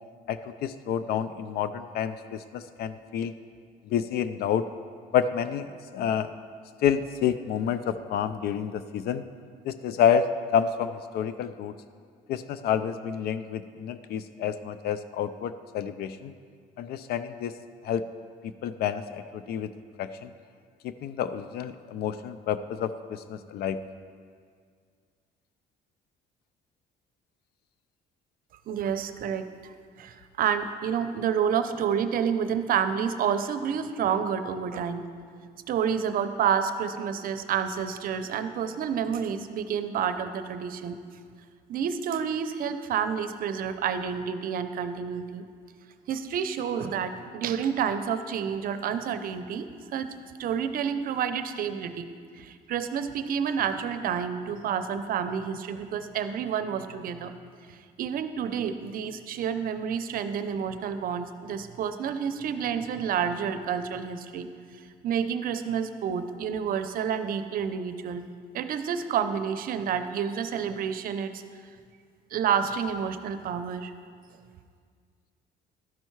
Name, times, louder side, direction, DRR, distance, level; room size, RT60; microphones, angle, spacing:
voice 1, 0.3-3.3 3.9-4.7 5.1-5.7 5.9-6.3 6.8-9.2 9.6-10.3 10.5-11.7 12.3-16.3 16.8-17.5 17.8-18.0 18.6-19.7 20.0-20.3 20.8-23.8, left 8 dB, 70° left, 12 dB, 0.4 m, -29 dB
voice 2, 28.7-35.0 35.7-41.0 41.7-45.4 46.1-50.1 50.4-52.1 52.4-57.3 57.7-64.5 65.0-68.2 68.5-71.4 72.3-73.9, right 7 dB, 60° right, 10 dB, 0.6 m, -29 dB
12.5 x 5.5 x 4.6 m, 2.1 s
cardioid pair, 110°, 17 cm